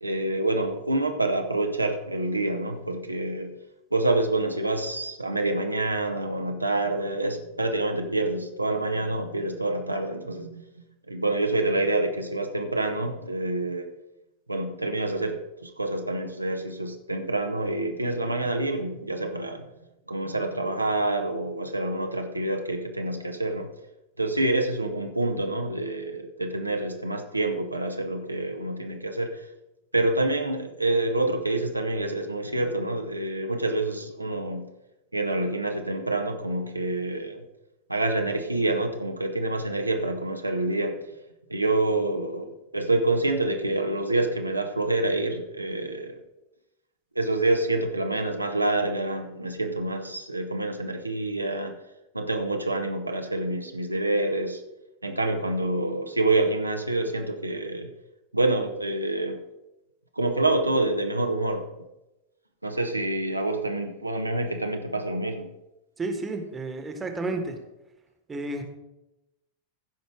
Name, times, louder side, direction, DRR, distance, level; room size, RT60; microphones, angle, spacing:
voice 1, 0.0-3.6 3.9-13.9 14.5-19.7 20.1-23.7 24.2-29.4 29.9-34.7 35.1-37.4 37.9-41.0 41.5-46.2 47.1-51.8 52.1-54.6 55.0-57.9 58.3-59.4 60.1-61.7 62.6-65.5, right 2 dB, 85° right, 4 dB, 0.9 m, -27 dB
voice 2, 66.0-67.6 68.3-68.6, right 2 dB, 15° right, 5 dB, 1.4 m, -31 dB
15.5 x 5.2 x 4.8 m, 0.96 s
figure-of-eight pair, 90°, 0 cm